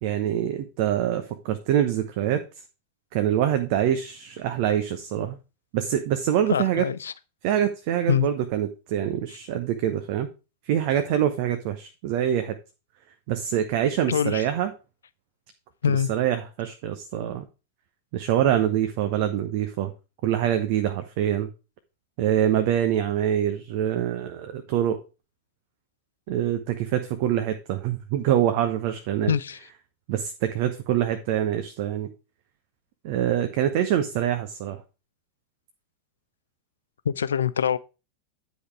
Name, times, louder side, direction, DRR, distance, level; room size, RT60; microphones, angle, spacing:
voice 1, 0.0-2.4 3.1-5.4 5.7-6.9 7.4-10.3 10.7-12.6 13.3-14.7 15.9-17.4 18.1-19.9 20.2-21.5 22.2-25.0 26.3-29.3 30.1-32.1 33.0-34.8, right 10 dB, 45° right, 0.9 m, -25 dB
voice 2, 6.5-7.1 8.1-8.3 14.1-14.4 15.8-16.1 29.3-29.6 37.1-37.8, left 8 dB, 70° left, 0.5 m, -24 dB
10.0 x 5.2 x 4.7 m
figure-of-eight pair, 90°, 0 cm